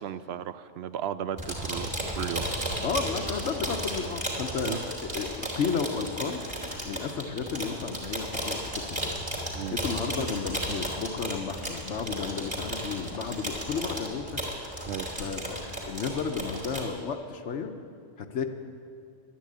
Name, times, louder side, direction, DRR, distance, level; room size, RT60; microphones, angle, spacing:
voice 1, 0.0-1.9 2.2-2.5 4.6-4.8 9.5-9.7 14.9-15.1, right 9 dB, 65° right, 13 dB, 0.7 m, -34 dB
sound 1, 1.4-16.9, right 1 dB, 20° right, 3.0 m, -34 dB
voice 2, 2.8-6.4 6.8-9.0 9.7-14.4 15.2-17.7 18.2-18.4, left 5 dB, 70° left, 6 dB, 1.1 m, -33 dB
11.5 x 10.0 x 8.5 m, 2.4 s
omnidirectional pair, 1.3 m